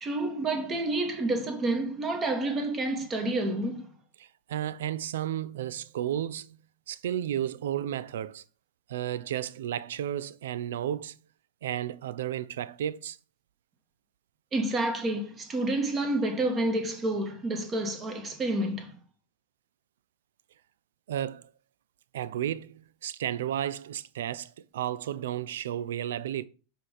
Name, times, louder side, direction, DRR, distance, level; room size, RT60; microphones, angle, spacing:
voice 1, 0.0-3.9 14.5-19.0, right 2 dB, 25° right, 1.4 m, -29 dB
voice 2, 4.2-6.6 6.9-8.4 8.9-11.2 11.6-13.2 21.1-21.5 22.1-26.4, right 11 dB, 60° right, 0.4 m, -33 dB
7.3 x 3.5 x 5.6 m
figure-of-eight pair, 90°, 0 cm